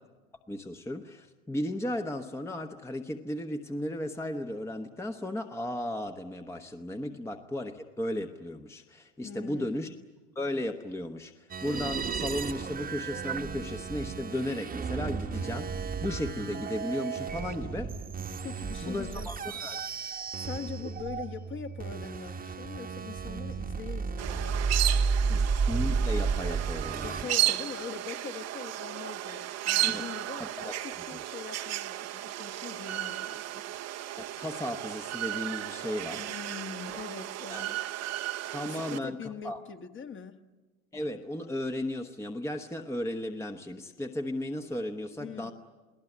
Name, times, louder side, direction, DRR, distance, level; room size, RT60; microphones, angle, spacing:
voice 1, 0.5-9.9 10.3-17.9 18.8-19.8 25.3-25.4 25.7-27.3 29.9-30.0 30.4-30.7 34.2-36.3 36.9-37.0 37.5-37.6 38.5-39.2 39.4-39.6 40.9-45.5, left 1 dB, 5° left, 1.1 m, -35 dB
voice 2, 9.2-9.9 18.4-19.3 20.4-25.5 27.0-33.6 36.2-37.8 38.6-40.4 45.2-45.5, left 6 dB, 30° left, 1.5 m, -42 dB
sound 1, 11.5-27.2, right 5 dB, 20° right, 1.3 m, -33 dB
sound 2, 24.2-39.0, right 14 dB, 40° right, 1.0 m, -34 dB
29.0 x 18.0 x 9.8 m
hypercardioid pair, 100°, 40 cm